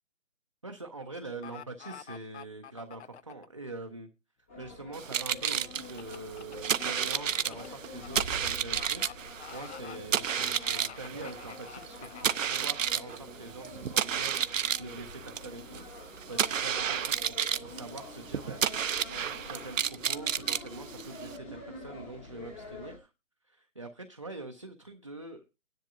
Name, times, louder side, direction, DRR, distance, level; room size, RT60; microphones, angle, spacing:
voice 1, 0.6-4.1 4.6-23.1 23.4-25.5, right 2 dB, 25° right, 3 dB, 0.5 m, -44 dB
sound 1, 1.4-3.5 5.8-8.2 8.7-9.1 9.4-10.0 10.4-12.6 13.1-13.2, left 8 dB, 60° left, 0.5 m, -47 dB
sound 2, 4.5-23.0, left 2 dB, 10° left, 0.8 m, -46 dB
sound 3, 4.9-21.4, right 8 dB, 75° right, 0.6 m, -32 dB
15.0 x 10.5 x 2.4 m, 0.26 s
hypercardioid pair, 160°, 39 cm